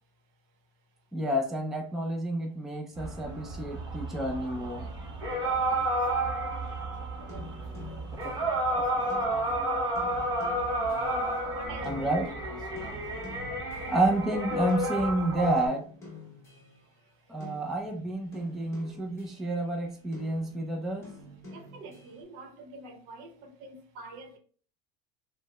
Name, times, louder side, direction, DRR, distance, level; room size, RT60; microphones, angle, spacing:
voice 1, 1.1-4.8 11.8-12.3 13.6-15.9 17.3-21.1, right 1 dB, ahead, 0.4 m, -30 dB
sound 1, 3.0-15.7, right 1 dB, 25° right, 0.9 m, -31 dB
voice 2, 7.2-8.1 11.4-12.2 21.5-24.3, right 3 dB, 65° right, 0.8 m, -46 dB
sound 2, 7.3-14.4 14.7-17.0 17.4-19.7 20.1-22.2, left 2 dB, 15° left, 1.1 m, -48 dB
4.5 x 2.1 x 2.2 m
cardioid pair, 150°, 16 cm